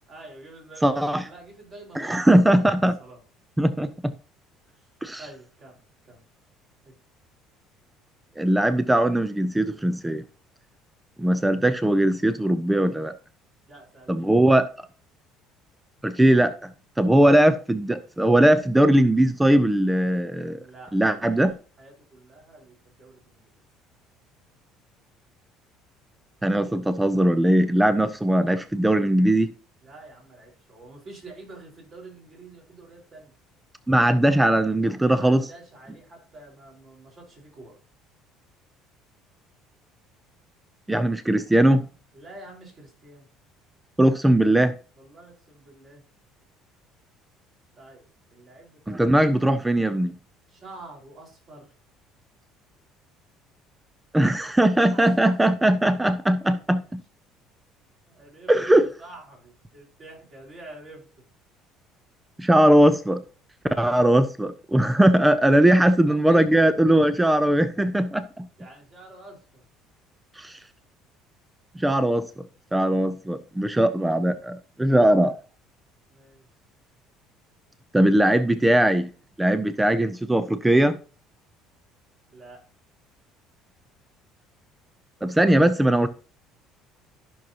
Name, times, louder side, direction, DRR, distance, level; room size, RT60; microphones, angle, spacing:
voice 1, 0.1-2.6 3.0-3.2 4.7-4.9 5.2-6.2 6.8-6.9 13.7-14.6 20.6-21.4 21.8-23.6 29.8-33.3 35.0-37.8 42.1-43.3 44.9-46.0 47.8-49.8 50.5-51.7 54.9-55.4 58.1-61.2 65.4-66.6 68.6-69.6 73.7-73.9 76.1-76.5 82.3-82.6, right 2 dB, 35° right, 4.7 m, -47 dB
voice 2, 0.8-1.2 2.0-3.0 3.6-4.1 5.0-5.2 8.4-10.2 11.2-13.1 14.1-14.7 16.0-16.7 17.0-20.6 20.9-21.6 26.4-29.5 33.9-35.5 40.9-41.8 44.0-44.7 48.9-50.1 54.1-57.0 58.5-58.9 62.4-63.2 63.8-68.5 70.4-70.6 71.8-72.3 72.7-75.3 77.9-79.1 79.4-81.0 85.2-86.1, right 1 dB, 5° right, 0.4 m, -20 dB
13.5 x 6.1 x 2.9 m
cardioid pair, 150°, 0 cm